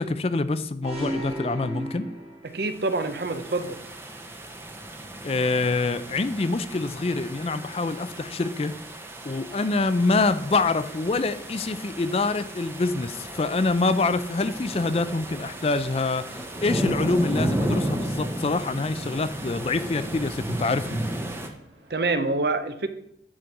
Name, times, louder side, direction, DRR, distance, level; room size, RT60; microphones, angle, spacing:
voice 1, 0.0-2.1 5.2-8.7 9.3-21.0, left 3 dB, 35° left, 12 dB, 0.4 m, -25 dB
sound 1, 0.8-2.8, right 1 dB, 35° right, 1.5 m, -34 dB
voice 2, 2.4-3.8 21.9-22.9, right 3 dB, 60° right, 10 dB, 0.7 m, -26 dB
sound 2, 2.6-21.5, right 1 dB, 15° right, 0.8 m, -34 dB
sound 3, 9.9-22.3, right 1 dB, 80° right, 1.7 m, -52 dB
10.0 x 4.5 x 5.1 m, 0.75 s
head